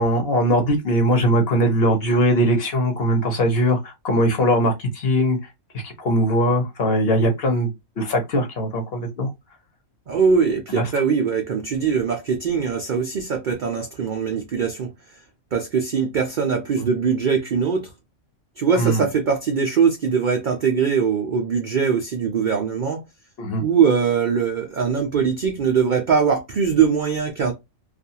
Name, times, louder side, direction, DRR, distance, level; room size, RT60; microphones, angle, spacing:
voice 1, 0.0-5.4 5.8-7.7 8.0-9.3 10.8-10.9 18.7-19.0 23.4-23.6, equal, 50° left, 0.9 m, -20 dB
voice 2, 10.1-14.9 15.5-17.9 18.6-23.0 23.6-27.5, right 6 dB, 75° right, 0.4 m, -21 dB
2.5 x 2.3 x 2.7 m
omnidirectional pair, 1.4 m